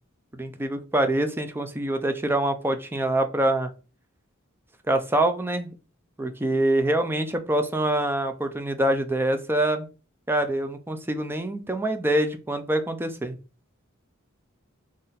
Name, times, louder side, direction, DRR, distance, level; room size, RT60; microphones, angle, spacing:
voice 1, 0.3-3.7 4.9-5.7 6.2-9.9 10.3-13.4, right 1 dB, 10° right, 7 dB, 0.5 m, -25 dB
4.1 x 3.1 x 3.9 m, 0.33 s
head